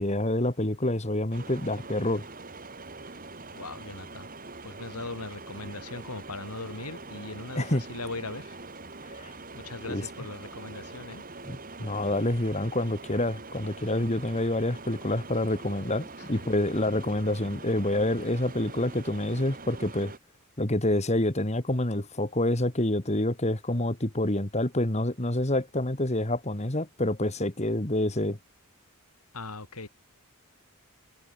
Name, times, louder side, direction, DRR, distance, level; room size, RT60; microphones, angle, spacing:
voice 1, 0.0-2.2 7.6-7.8 9.2-9.3 9.9-10.0 11.4-20.1 20.6-28.4, left 1 dB, 30° left, 2.0 m, -27 dB
sound 1, 1.3-20.2, right 3 dB, 40° right, 3.5 m, -44 dB
voice 2, 3.5-4.3 4.6-8.6 9.5-11.2 16.2-16.5 29.3-29.9, left 3 dB, 90° left, 4.2 m, -39 dB
head